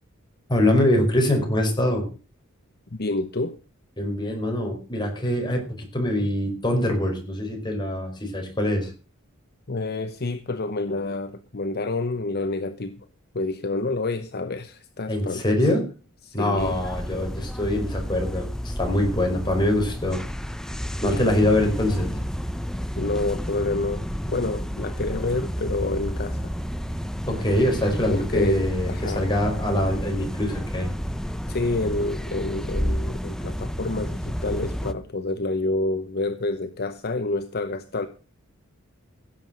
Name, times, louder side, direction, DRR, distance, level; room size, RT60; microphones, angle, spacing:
voice 1, 0.5-2.0 4.0-8.9 15.1-15.8 16.3-20.2 21.0-22.1 27.3-30.9, left 1 dB, 20° left, 2 dB, 4.9 m, -24 dB
voice 2, 2.9-3.6 9.7-12.9 13.3-15.7 16.2-16.8 23.0-26.5 28.1-29.3 31.5-38.1, left 2 dB, 50° left, 10 dB, 0.8 m, -28 dB
sound 1, 16.6-34.9, equal, 5° left, 0.7 m, -30 dB
16.5 x 7.5 x 6.3 m, 0.36 s
head